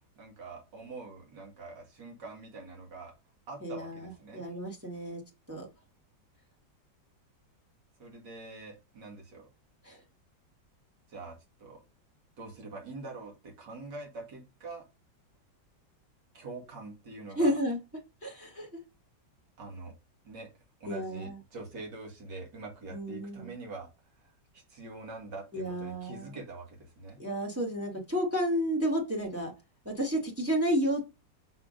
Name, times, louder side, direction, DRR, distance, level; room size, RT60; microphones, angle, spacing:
voice 1, 0.2-3.1 3.5-4.4 8.0-9.5 11.1-11.8 12.4-14.8 16.3-17.6 19.6-19.9 20.2-20.5 20.8-23.9 24.2-27.2, right 3 dB, 70° right, 0 dB, 2.6 m, -44 dB
voice 2, 3.6-5.2 5.5-5.7 9.8-10.0 17.3-17.8 18.2-18.7 20.9-21.4 22.9-23.5 25.5-26.4 27.2-29.5 29.8-31.0, equal, 10° right, 1 dB, 1.1 m, -31 dB
5.9 x 3.6 x 5.0 m, 0.27 s
omnidirectional pair, 1.9 m